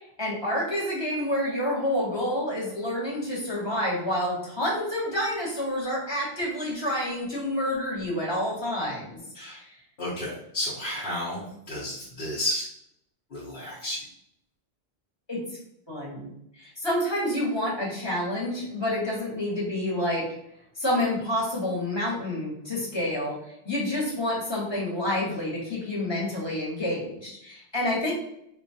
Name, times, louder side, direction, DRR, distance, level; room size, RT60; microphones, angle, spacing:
voice 1, 0.2-9.2 9.6-9.7 15.3-15.4 15.9-16.3 16.6-20.3 20.8-23.4 23.6-28.1, left 1 dB, 25° left, -5 dB, 1.1 m, -28 dB
voice 2, 10.0-12.7 13.3-14.0, left 1 dB, 65° left, -7 dB, 1.1 m, -32 dB
4.0 x 2.2 x 2.7 m, 0.75 s
omnidirectional pair, 1.1 m